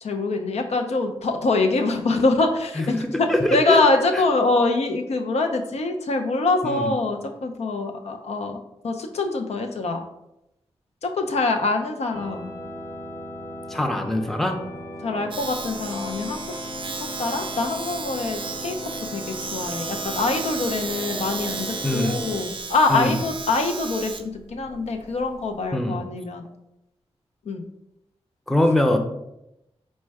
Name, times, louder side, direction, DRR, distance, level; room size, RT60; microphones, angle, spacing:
voice 1, 0.0-10.0 11.0-12.5 15.0-16.6 17.0-18.7 19.1-26.5 27.5-27.7, left 3 dB, 80° left, 4 dB, 0.5 m, -24 dB
voice 2, 2.8-3.8 6.6-6.9 13.7-14.6 21.8-22.2 22.9-23.1 25.7-26.0 28.5-29.0, left 1 dB, 5° left, 4 dB, 0.5 m, -22 dB
sound 1, 12.1-22.4, equal, 40° left, 0.8 m, -37 dB
Domestic sounds home sounds, 15.3-25.7, right 4 dB, 50° right, 0.4 m, -34 dB
4.2 x 2.1 x 4.6 m, 0.86 s
wide cardioid pair, 80°, 11 cm